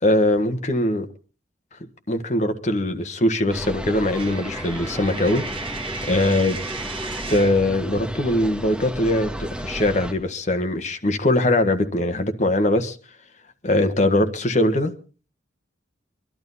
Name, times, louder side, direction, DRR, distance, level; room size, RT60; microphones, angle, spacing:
voice 1, 0.0-1.1 2.1-5.4 6.0-6.6 7.3-13.0 13.6-14.9, left 1 dB, 40° left, 1.5 m, -21 dB
sound 1, 3.5-10.1, equal, 5° right, 2.3 m, -33 dB
Coin (dropping), 4.1-7.7, right 3 dB, 30° right, 1.4 m, -35 dB
23.5 x 12.0 x 4.1 m
head